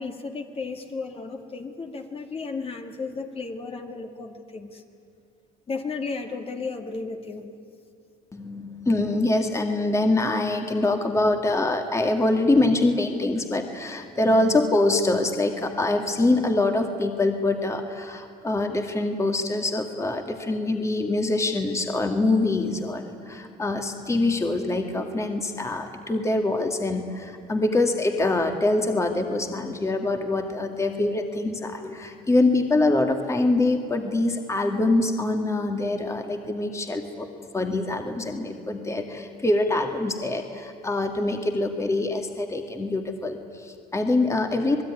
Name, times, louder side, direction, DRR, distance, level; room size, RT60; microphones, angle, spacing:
voice 1, 0.0-4.8 5.7-7.5, left 4 dB, 35° left, 4 dB, 2.2 m, -34 dB
voice 2, 8.3-37.3 37.5-44.8, left 2 dB, 15° left, 4 dB, 2.1 m, -24 dB
27.5 x 19.5 x 10.0 m, 2.4 s
cardioid pair, 110°, 17 cm